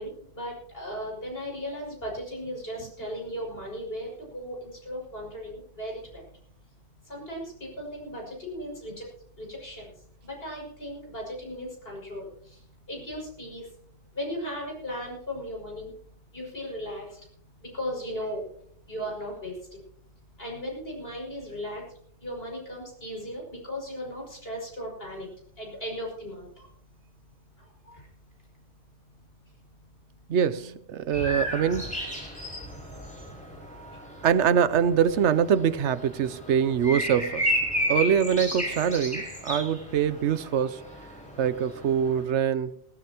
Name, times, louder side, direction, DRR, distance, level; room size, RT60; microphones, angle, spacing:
voice 1, 0.0-6.3 7.0-9.0 9.4-9.9 10.2-13.7 14.1-15.9 16.3-17.2 17.6-18.4 18.9-19.8 20.4-21.8 22.2-25.3 25.6-26.7 27.6-28.1 33.9-34.0, equal, 60° left, 6.3 m, -37 dB
voice 2, 30.3-31.9 34.2-37.5 37.9-40.8 41.4-42.7, right 8 dB, 85° right, 1.0 m, -24 dB
sound 1, 31.1-42.2, equal, 5° left, 5.3 m, -33 dB
20.0 x 17.0 x 3.0 m
omnidirectional pair, 1.1 m